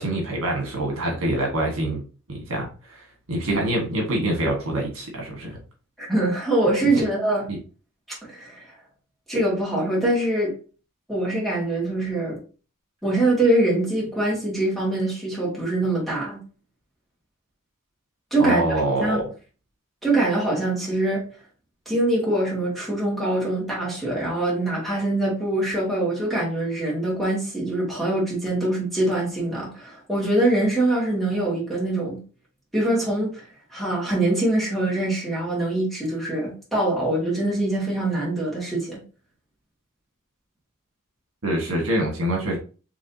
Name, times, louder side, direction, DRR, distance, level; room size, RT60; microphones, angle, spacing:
voice 1, 0.0-2.0 2.3-2.7 3.3-5.6 6.8-7.0 7.5-7.6 18.4-19.3 41.4-42.6, right 1 dB, 65° right, 1.7 m, -25 dB
voice 2, 6.0-7.5 8.3-8.6 9.3-10.5 11.1-12.4 13.0-16.4 18.3-18.6 19.0-19.2 20.0-21.2 21.9-32.2 32.7-33.4 33.7-39.0, right 1 dB, ahead, 2.1 m, -23 dB
4.9 x 3.2 x 2.8 m
head